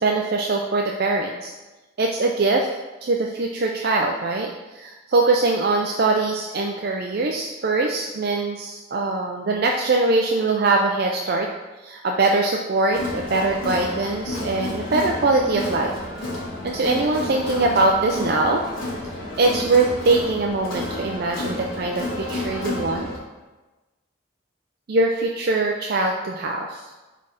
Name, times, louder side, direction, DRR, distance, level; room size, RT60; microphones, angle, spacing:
voice 1, 0.0-1.5 2.0-11.5 11.8-15.9 16.6-18.6 19.4-23.1 24.9-26.9, right 3 dB, 50° right, 1 dB, 0.4 m, -22 dB
Crowd, 12.9-23.2, left 1 dB, 75° left, 1.9 m, -31 dB
4.9 x 4.2 x 5.5 m, 1.2 s
head